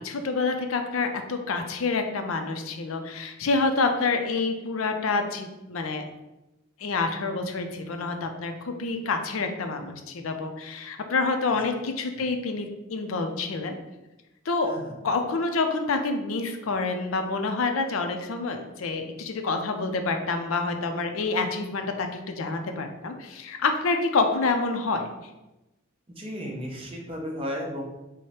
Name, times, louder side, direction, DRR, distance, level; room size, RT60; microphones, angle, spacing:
voice 1, 0.0-6.0 6.8-13.8 14.5-14.7 15.0-25.1, left 3 dB, 85° left, 6 dB, 0.5 m, -27 dB
voice 2, 26.2-27.8, equal, 25° right, -1 dB, 0.7 m, -34 dB
4.8 x 2.1 x 4.2 m, 0.99 s
head